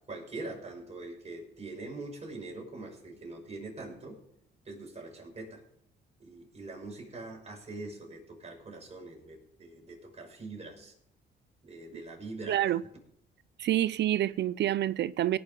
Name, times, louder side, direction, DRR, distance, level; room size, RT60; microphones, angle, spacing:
voice 1, 0.1-4.2 4.6-5.6 6.2-10.9 11.6-12.7, right 2 dB, 30° right, 6.0 m, -43 dB
voice 2, 12.5-12.8 13.6-15.4, right 12 dB, 60° right, 0.4 m, -27 dB
18.0 x 6.8 x 5.2 m
cardioid pair, 90°, 20 cm